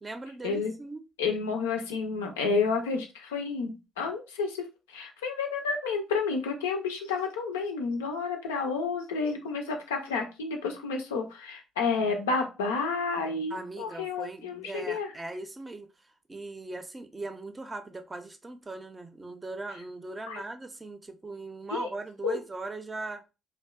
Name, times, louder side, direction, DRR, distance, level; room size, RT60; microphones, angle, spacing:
voice 1, 0.0-1.1 13.5-15.9 16.3-23.2, right 2 dB, 25° right, 0.5 m, -39 dB
voice 2, 1.2-4.6 4.9-15.1 20.3-20.4 21.7-21.9 22.2-22.4, left 4 dB, 80° left, 0.4 m, -30 dB
2.6 x 2.1 x 2.3 m
figure-of-eight pair, 45°, 0 cm